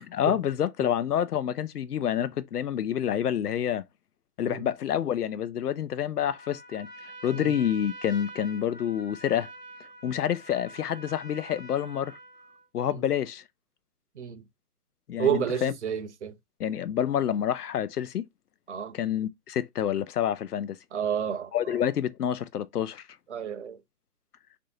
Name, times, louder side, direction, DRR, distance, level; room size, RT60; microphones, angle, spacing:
voice 1, 0.0-3.8 4.4-6.9 7.2-9.5 10.0-12.2 12.7-13.4 15.1-15.7 16.6-18.2 18.9-20.8 21.5-23.0, left 9 dB, 80° left, 0.6 m, -28 dB
Trumpet, 6.2-12.7, right 1 dB, ahead, 0.5 m, -46 dB
voice 2, 15.2-16.3 18.7-19.0 20.9-21.8 23.3-23.8, right 8 dB, 50° right, 0.6 m, -30 dB
3.2 x 2.6 x 2.7 m
figure-of-eight pair, 140°, 46 cm